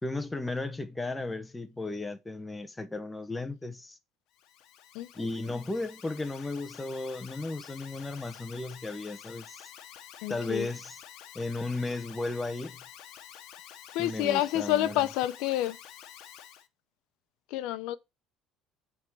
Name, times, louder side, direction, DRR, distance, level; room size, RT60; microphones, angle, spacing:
voice 1, 0.0-4.0 5.1-9.7 10.3-11.0 11.3-12.8 14.0-15.0, left 2 dB, 10° left, 0.8 m, -35 dB
Alarm, 4.3-16.7, left 10 dB, 65° left, 1.0 m, -49 dB
voice 2, 4.9-5.3 10.2-10.7 13.9-15.8 17.5-18.0, left 13 dB, 80° left, 0.7 m, -29 dB
9.0 x 3.6 x 6.2 m
cardioid pair, 155°, 0 cm